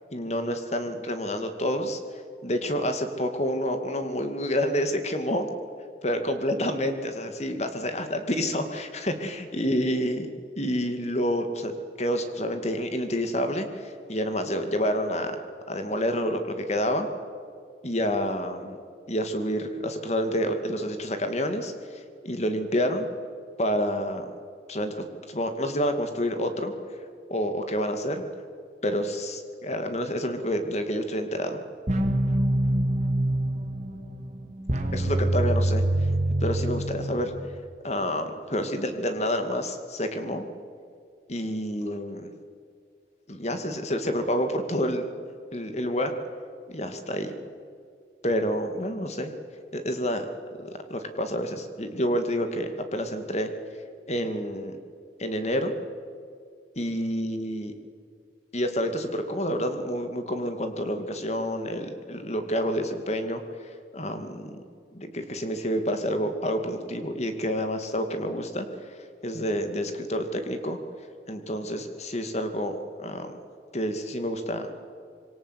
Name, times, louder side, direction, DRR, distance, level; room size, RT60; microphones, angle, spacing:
voice 1, 0.1-5.5 6.0-10.3 10.6-15.4 15.7-17.1 17.8-18.8 19.1-23.1 23.6-24.3 24.7-24.9 25.3-26.7 27.3-28.2 28.8-31.6 34.9-35.8 36.4-37.3 37.8-40.5 41.3-42.3 43.3-45.1 45.5-46.1 46.7-47.3 48.2-49.3 49.7-50.3 50.6-53.5 54.1-54.8 55.2-55.7 56.8-57.7 58.5-64.6 64.9-69.0 69.2-70.8 71.3-73.3 73.7-74.7, equal, 35° left, 7 dB, 2.4 m, -28 dB
sound 1, 31.9-37.5, right 1 dB, 40° right, 2.9 m, -25 dB
26.0 x 23.0 x 8.3 m, 2.2 s
head